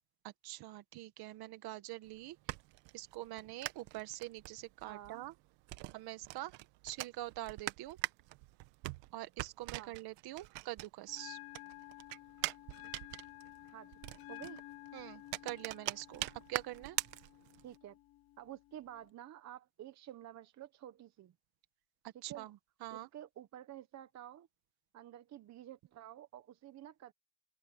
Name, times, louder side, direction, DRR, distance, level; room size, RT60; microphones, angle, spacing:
voice 1, 0.2-2.4 2.9-5.3 5.9-6.5 6.8-8.0 9.1-11.4 14.9-17.0 22.2-23.1, right 16 dB, 55° right, 1.6 m, -45 dB
sound 1, 2.0-11.2 11.5-17.8, right 19 dB, 75° right, 1.5 m, -43 dB
voice 2, 4.8-5.2 9.7-10.0 13.7-13.9 14.3-14.6 17.6-17.9 18.4-21.3 22.3-22.5 22.9-24.5 24.9-27.1, right 12 dB, 35° right, 1.1 m, -50 dB
Bell, 11.1-19.1, left 19 dB, 50° left, 1.2 m, -53 dB
cardioid pair, 160°, 44 cm